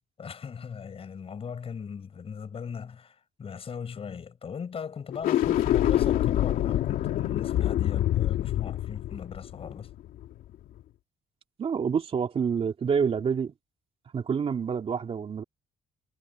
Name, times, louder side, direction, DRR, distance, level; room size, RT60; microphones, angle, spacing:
voice 1, 0.2-9.9, left 6 dB, 40° left, 5.5 m, -39 dB
sound 1, 5.1-10.4, left 12 dB, 75° left, 2.7 m, -26 dB
voice 2, 11.6-13.5 14.1-15.4, right 6 dB, 40° right, 2.7 m, -27 dB
cardioid pair, 95°, 15 cm